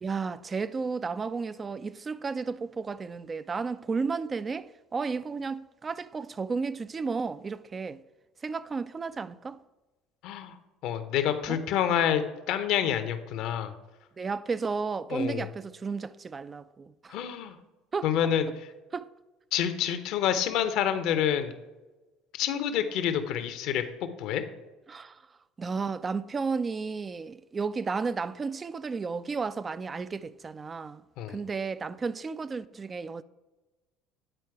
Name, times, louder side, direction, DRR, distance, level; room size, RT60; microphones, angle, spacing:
voice 1, 0.0-8.0 8.4-9.6 11.5-11.6 14.2-17.2 17.9-18.1 18.9-19.1 24.9-25.2 25.6-31.0 31.3-33.2, right 4 dB, 30° right, 0.4 m, -33 dB
voice 2, 10.2-10.5 10.8-13.7 15.1-15.5 17.1-17.5 18.0-18.5 19.5-21.5 22.4-23.8 24.2-24.4 31.2-31.4, left 9 dB, 60° left, 0.7 m, -27 dB
9.0 x 4.5 x 4.6 m
hypercardioid pair, 65°, 0 cm